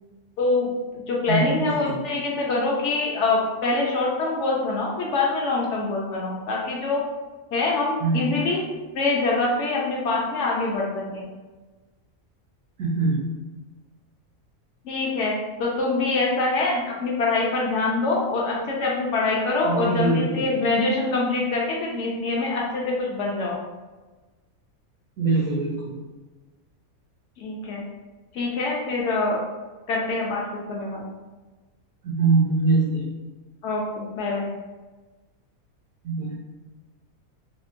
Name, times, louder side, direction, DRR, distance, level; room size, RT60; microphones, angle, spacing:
voice 1, 0.4-7.0 7.5-8.6 8.9-11.3 14.8-23.6 27.4-27.8 28.3-29.4 29.9-31.0 33.6-34.5, left 3 dB, 65° left, -2 dB, 0.8 m, -25 dB
voice 2, 1.3-2.0 8.0-8.3 12.8-13.2 19.6-20.4 25.2-26.0 32.0-33.0 36.0-36.3, right 3 dB, 80° right, -7 dB, 1.1 m, -23 dB
3.6 x 2.1 x 2.5 m, 1.2 s
omnidirectional pair, 1.5 m